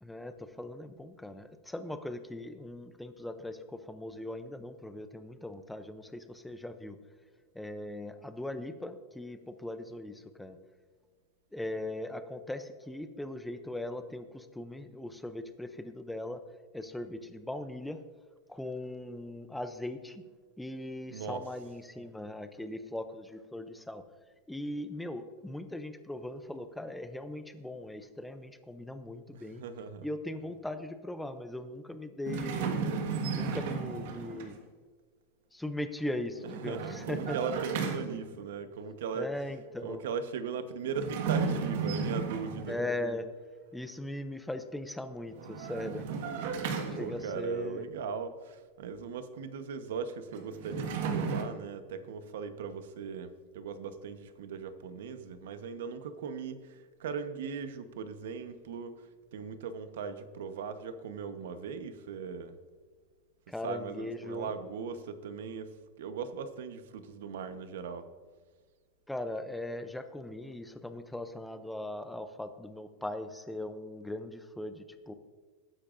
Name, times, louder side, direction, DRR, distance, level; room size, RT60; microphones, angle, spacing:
voice 1, 0.0-7.0 7.5-10.6 11.5-16.4 16.7-18.0 18.5-20.2 20.6-24.0 24.5-29.6 30.0-32.7 33.3-34.6 35.5-37.4 39.1-40.0 42.7-43.3 43.7-46.1 46.9-47.9 63.5-64.5 69.1-75.1, left 1 dB, 5° left, 9 dB, 0.5 m, -39 dB
voice 2, 21.1-21.4 29.3-30.1 36.4-39.3 39.8-42.7 47.0-59.1 59.3-62.6 63.6-68.1, right 6 dB, 75° right, 10 dB, 1.0 m, -39 dB
sound 1, 32.3-34.6 36.4-38.4 40.9-42.9 45.3-47.5 50.3-51.4, right 5 dB, 60° right, 1.5 m, -34 dB
19.5 x 10.0 x 2.6 m, 1.4 s
supercardioid pair, 180°, 0 cm